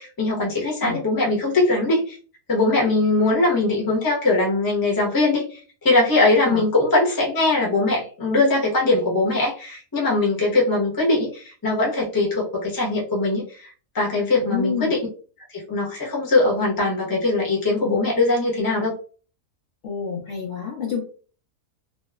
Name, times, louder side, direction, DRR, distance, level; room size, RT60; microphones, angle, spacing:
voice 1, 0.0-2.2 2.5-15.0 15.5-18.9, left 2 dB, 20° left, -3 dB, 0.6 m, -21 dB
voice 2, 14.4-14.9 19.8-21.0, left 6 dB, 60° left, -2 dB, 0.8 m, -28 dB
2.9 x 2.0 x 2.2 m, 0.39 s
omnidirectional pair, 1.6 m